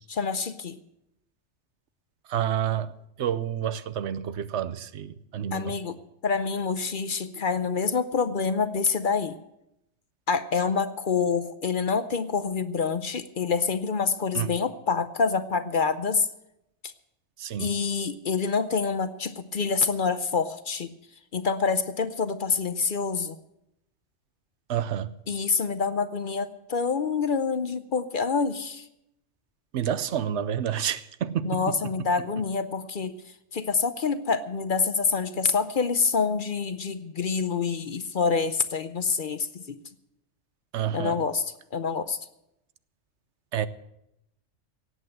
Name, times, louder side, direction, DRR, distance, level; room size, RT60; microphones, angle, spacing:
voice 1, 0.1-0.8 5.5-6.0 6.2-9.3 10.3-16.3 16.8-16.9 17.6-20.9 21.3-23.4 25.3-28.9 31.4-33.1 33.5-39.8 40.9-42.3, left 5 dB, 50° left, 0.8 m, -27 dB
voice 2, 2.3-2.9 3.2-5.7 14.3-14.5 17.4-17.7 24.7-25.1 29.7-31.7 40.7-41.2 43.5-43.7, right 9 dB, 75° right, 1.0 m, -29 dB
17.5 x 8.2 x 7.5 m
omnidirectional pair, 1.2 m